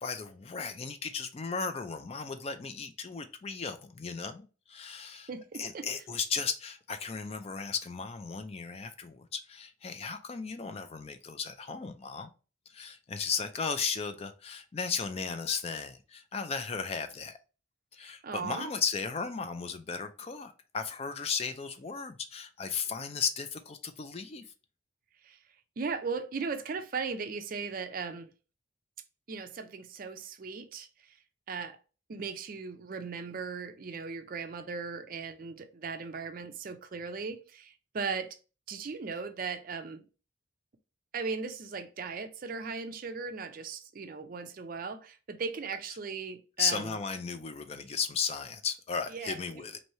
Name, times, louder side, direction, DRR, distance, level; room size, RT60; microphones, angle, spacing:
voice 1, 0.0-5.3 5.6-12.3 12.7-17.4 17.9-24.5 46.6-49.8, left 5 dB, 30° left, 0.3 m, -35 dB
voice 2, 5.1-5.9 18.0-18.7 25.2-25.4 25.8-28.3 29.3-30.9 31.5-31.8 32.1-38.4 38.7-40.1 41.1-47.0 49.1-49.6, right 5 dB, 45° right, 0.4 m, -38 dB
3.1 x 2.6 x 4.2 m
head